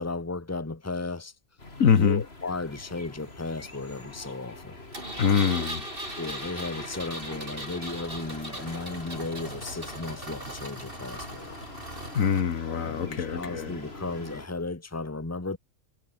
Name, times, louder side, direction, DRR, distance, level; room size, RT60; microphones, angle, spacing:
voice 1, 0.0-1.3 1.9-4.8 6.2-11.6 12.7-15.6, left 3 dB, 10° left, 1.6 m, -35 dB
sound 1, 1.6-14.5, left 2 dB, 45° left, 4.0 m, -44 dB
voice 2, 1.8-2.2 5.2-5.9 12.1-13.8, left 7 dB, 70° left, 1.7 m, -24 dB
Engine, 4.9-12.4, right 1 dB, 40° right, 8.0 m, -39 dB
omnidirectional pair, 1.5 m